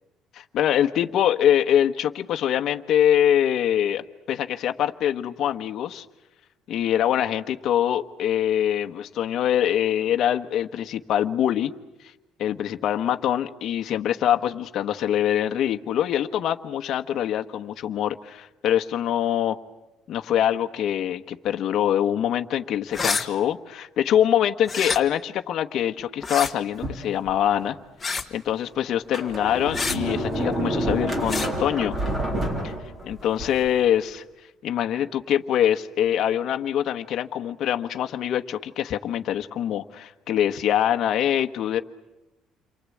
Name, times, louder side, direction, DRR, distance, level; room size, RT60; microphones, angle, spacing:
voice 1, 0.3-6.0 6.7-11.7 12.4-19.6 20.1-27.8 28.3-31.9 32.6-32.7 33.0-34.2 34.6-41.8, left 10 dB, 55° left, 6 dB, 1.2 m, -24 dB
sound 1, 22.9-23.2 24.6-25.0 26.2-26.5 28.0-28.3 29.7-30.0 31.3-31.5, left 4 dB, 15° left, 1.4 m, -27 dB
Sliding door, 26.8-27.7 28.3-28.4 28.9-33.8, right 1 dB, 20° right, 3.9 m, -28 dB
29.0 x 24.0 x 8.5 m, 1.0 s
cardioid pair, 155°, 0 cm